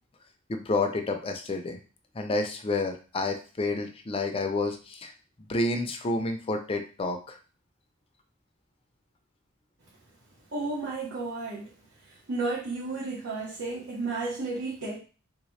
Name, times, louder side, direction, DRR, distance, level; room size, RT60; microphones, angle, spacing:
voice 1, 0.5-1.8 2.1-5.1 5.5-7.4, left 2 dB, 25° left, 5 dB, 0.5 m, -29 dB
voice 2, 10.5-11.7 12.3-15.0, right 3 dB, 70° right, -5 dB, 1.0 m, -32 dB
3.4 x 2.8 x 3.1 m, 0.35 s
head